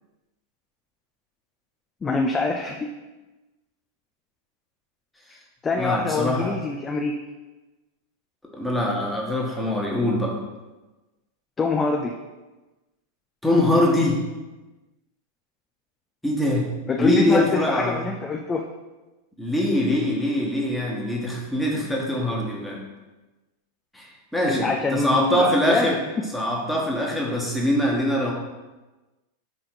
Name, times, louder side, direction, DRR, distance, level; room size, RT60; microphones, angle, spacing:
voice 1, 2.0-2.9 5.6-7.2 11.6-12.1 16.9-18.7 24.5-26.2, left 3 dB, 20° left, 2 dB, 0.5 m, -25 dB
voice 2, 5.8-6.5 8.5-10.4 13.4-14.2 16.2-16.7 17.0-18.0 19.4-22.8 23.9-24.1 24.3-26.0 26.3-28.3, left 1 dB, 5° left, -2 dB, 1.4 m, -23 dB
4.9 x 4.4 x 5.9 m, 1.1 s
figure-of-eight pair, 90°, 0 cm